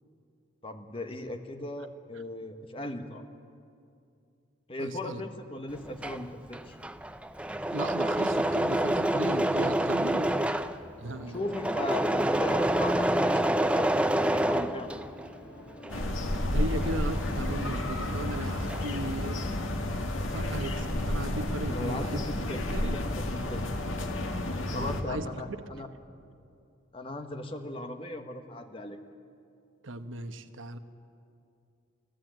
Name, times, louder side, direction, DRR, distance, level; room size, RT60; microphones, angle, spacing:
voice 1, 0.6-3.2 4.7-6.8 11.3-14.9 21.7-23.6 24.7-25.9 26.9-29.0, left 1 dB, 25° left, 7 dB, 1.2 m, -37 dB
voice 2, 4.8-5.2 7.7-10.3 11.0-11.4 16.5-19.4 20.3-22.2 22.7-23.0 24.7-25.4 29.8-30.8, right 2 dB, 75° right, 9 dB, 1.1 m, -36 dB
Engine / Mechanisms, 5.8-15.4 15.7-18.1 18.3-19.0, right 1 dB, 5° right, 0.5 m, -28 dB
sound 1, 11.0-16.5, left 1 dB, 60° left, 5.0 m, -47 dB
sound 2, 15.9-25.0, left 1 dB, 85° left, 1.8 m, -31 dB
24.5 x 15.5 x 9.1 m, 2.5 s
head